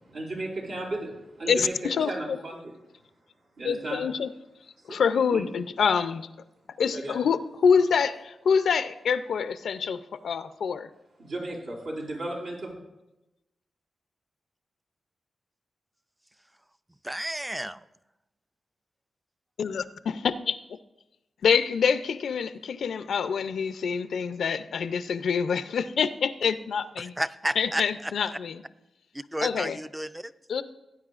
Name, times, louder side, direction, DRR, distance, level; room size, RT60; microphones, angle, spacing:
voice 1, 0.1-1.7 2.1-2.6 3.6-4.0 4.9-5.0 5.3-5.5 6.9-7.2 11.2-12.7, right 2 dB, 85° right, -3 dB, 3.9 m, -34 dB
voice 2, 1.5-2.4 3.6-4.3 4.9-6.3 6.8-10.9 19.6-20.6 21.4-27.1 27.6-28.6 29.4-29.8 30.5-30.6, left 6 dB, 85° left, 12 dB, 0.4 m, -26 dB
voice 3, 17.0-17.8 27.0-28.1 29.3-30.3, right 1 dB, 10° right, 13 dB, 0.4 m, -32 dB
17.5 x 9.3 x 2.5 m, 0.95 s
wide cardioid pair, 105°, 0 cm